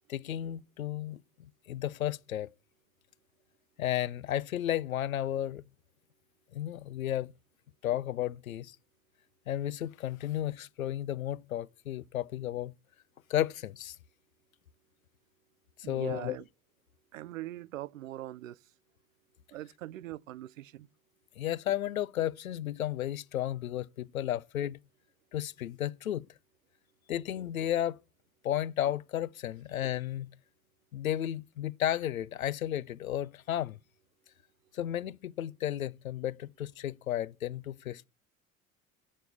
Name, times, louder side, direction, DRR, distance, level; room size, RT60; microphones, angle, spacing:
voice 1, 0.1-2.5 3.8-5.6 6.5-7.3 7.8-8.8 9.5-12.7 13.3-14.0 15.8-16.4 21.4-24.8 25.3-26.3 27.1-28.0 28.4-30.4 30.9-33.8 34.7-38.0, left 12 dB, 80° left, 0.5 m, -33 dB
voice 2, 15.8-16.5 17.1-18.6 19.5-20.9, right 15 dB, 70° right, 0.5 m, -41 dB
8.7 x 7.2 x 8.3 m
figure-of-eight pair, 65°, 41 cm